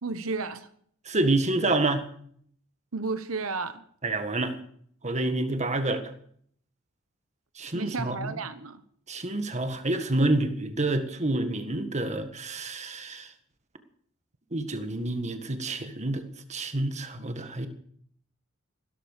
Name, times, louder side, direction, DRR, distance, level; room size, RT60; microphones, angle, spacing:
voice 1, 0.0-0.7 2.9-3.8 7.7-8.8, right 4 dB, 85° right, 11 dB, 1.1 m, -32 dB
voice 2, 1.1-2.1 4.0-4.6 5.0-6.1 7.6-8.3 9.1-13.3 14.5-17.7, right 2 dB, 35° right, 8 dB, 1.7 m, -28 dB
16.0 x 13.0 x 6.7 m, 0.63 s
head